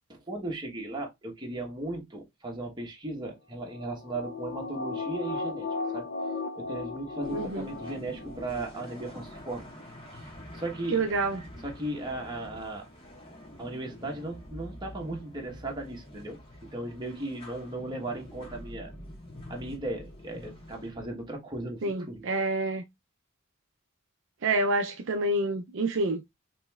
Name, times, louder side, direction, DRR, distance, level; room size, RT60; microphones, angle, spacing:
voice 1, 0.1-6.1 6.5-9.7 10.1-11.1 11.6-12.9 13.6-18.9 19.5-22.3, right 2 dB, 20° right, 1.1 m, -37 dB
sound 1, 3.6-8.4 8.8-8.9, left 4 dB, 45° left, 0.4 m, -36 dB
sound 2, 7.2-20.9, left 1 dB, 25° left, 1.4 m, -46 dB
voice 2, 7.3-7.7 10.9-11.4 21.8-22.8 24.4-26.3, right 2 dB, 60° right, 0.5 m, -28 dB
5.0 x 3.1 x 2.3 m
head